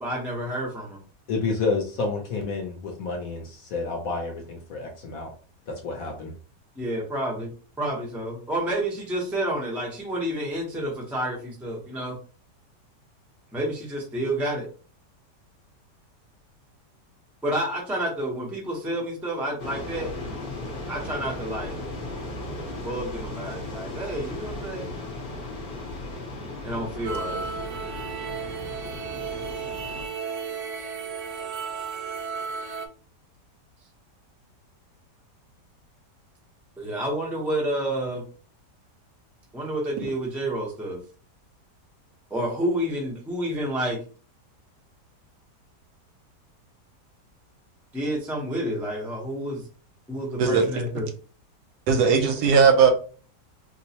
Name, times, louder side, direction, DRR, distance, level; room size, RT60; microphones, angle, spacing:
voice 1, 0.0-1.0 6.8-7.5 7.8-12.2 13.5-14.7 17.4-20.1 20.9-21.8 22.8-24.9 26.6-27.4 36.8-38.2 39.5-41.0 42.3-44.0 47.9-49.7 50.1-51.1, right 1 dB, ahead, 0.4 m, -29 dB
voice 2, 1.3-5.3 5.7-6.3, left 4 dB, 65° left, 0.9 m, -29 dB
sound 1, 19.6-30.1, left 2 dB, 45° left, 0.8 m, -36 dB
sound 2, 27.0-32.9, right 6 dB, 90° right, 0.6 m, -34 dB
voice 3, 51.9-52.9, right 6 dB, 75° right, 1.0 m, -18 dB
4.4 x 2.0 x 2.8 m
omnidirectional pair, 1.9 m